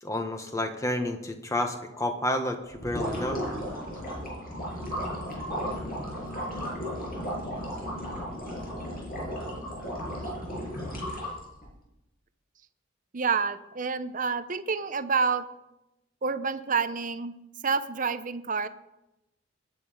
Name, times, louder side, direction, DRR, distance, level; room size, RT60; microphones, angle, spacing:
voice 1, 0.0-3.4, left 1 dB, 15° left, 6 dB, 1.4 m, -30 dB
sound 1, 2.7-11.7, equal, 45° left, 7.0 m, -34 dB
voice 2, 13.1-15.4 16.2-17.3 17.6-18.7, right 5 dB, 40° right, 11 dB, 0.7 m, -28 dB
20.5 x 9.6 x 5.2 m, 0.94 s
head